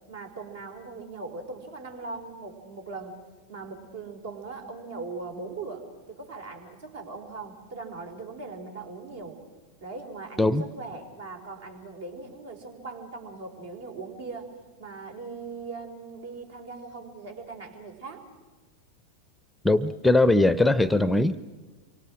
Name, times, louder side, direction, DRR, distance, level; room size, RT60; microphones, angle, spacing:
voice 1, 0.1-3.2 3.5-9.4 9.8-14.5 14.8-18.3, right 3 dB, 60° right, 3 dB, 4.3 m, -40 dB
voice 2, 19.6-21.4, left 2 dB, 5° left, 16 dB, 0.7 m, -20 dB
27.5 x 24.0 x 6.3 m, 1.2 s
figure-of-eight pair, 90°, 0 cm